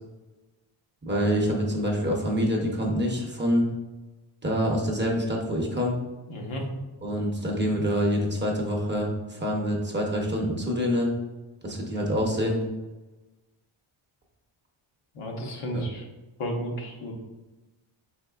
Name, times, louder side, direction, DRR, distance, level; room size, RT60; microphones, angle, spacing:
voice 1, 1.0-3.7 4.4-6.0 7.0-11.1 11.6-12.6 15.7-15.8, equal, 20° right, -1 dB, 0.6 m, -26 dB
voice 2, 6.3-6.7 15.1-16.0 16.4-17.1, equal, 80° left, 0 dB, 1.0 m, -32 dB
5.1 x 4.1 x 2.3 m, 1.2 s
wide cardioid pair, 160°, 49 cm